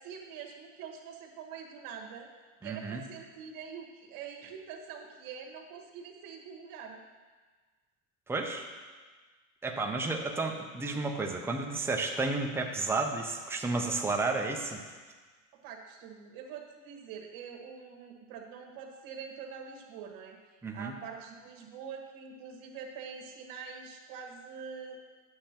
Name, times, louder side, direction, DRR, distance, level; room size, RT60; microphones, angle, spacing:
voice 1, 0.0-2.3 2.6-7.0 15.5-20.4 20.7-25.0, right 6 dB, 55° right, 1 dB, 1.5 m, -45 dB
voice 2, 2.6-3.0 8.3-8.6 9.6-14.8 20.6-20.9, right 3 dB, 5° right, 2 dB, 0.6 m, -32 dB
9.5 x 6.7 x 3.0 m, 1.4 s
supercardioid pair, 110°, 41 cm